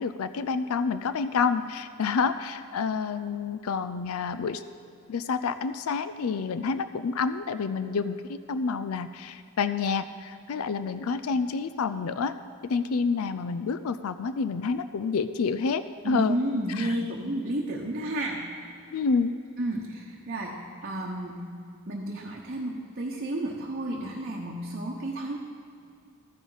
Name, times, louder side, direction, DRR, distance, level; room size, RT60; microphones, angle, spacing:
voice 1, 0.0-4.6 5.1-12.3 12.6-16.4 16.7-16.9 18.9-19.3, left 5 dB, 70° left, 12 dB, 0.4 m, -28 dB
voice 2, 16.0-18.8 19.6-21.5 21.9-25.4, right 1 dB, 45° right, -2 dB, 1.0 m, -32 dB
13.5 x 10.0 x 4.0 m, 2.6 s
head